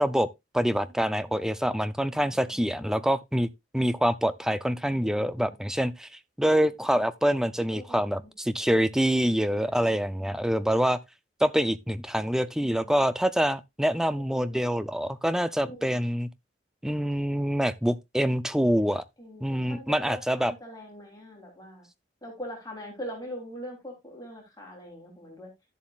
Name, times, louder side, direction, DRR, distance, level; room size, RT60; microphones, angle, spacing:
voice 1, 0.0-3.5 3.7-11.0 11.4-16.3 16.8-19.0 19.4-20.5, equal, 5° right, 0.4 m, -26 dB
voice 2, 2.1-3.1 5.0-5.6 7.7-8.3 9.6-10.4 12.6-13.1 14.1-14.6 15.6-16.0 19.2-21.9 22.2-25.5, equal, 20° left, 3.0 m, -43 dB
12.5 x 7.2 x 2.4 m
head